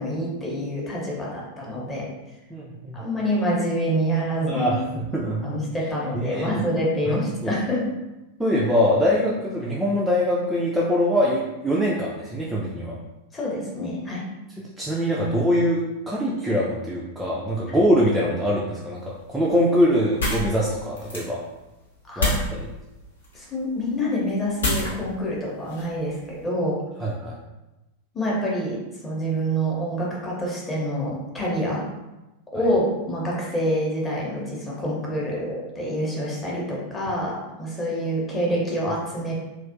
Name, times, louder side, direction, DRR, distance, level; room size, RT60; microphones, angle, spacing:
voice 1, 0.0-2.1 2.9-4.8 5.4-7.9 13.3-14.2 17.7-17.8 22.1-22.4 23.3-26.8 28.1-31.9 32.5-39.3, equal, 15° left, -4 dB, 0.7 m, -26 dB
voice 2, 2.5-3.0 4.5-5.5 6.1-6.6 7.1-7.5 8.4-13.0 14.8-21.4 22.2-22.7 27.0-27.3 32.5-32.6, equal, 5° right, -6 dB, 0.3 m, -23 dB
sound 1, 19.0-26.5, left 2 dB, 70° left, 0.8 m, -31 dB
2.4 x 2.1 x 2.4 m, 1.0 s
figure-of-eight pair, 90°, 0 cm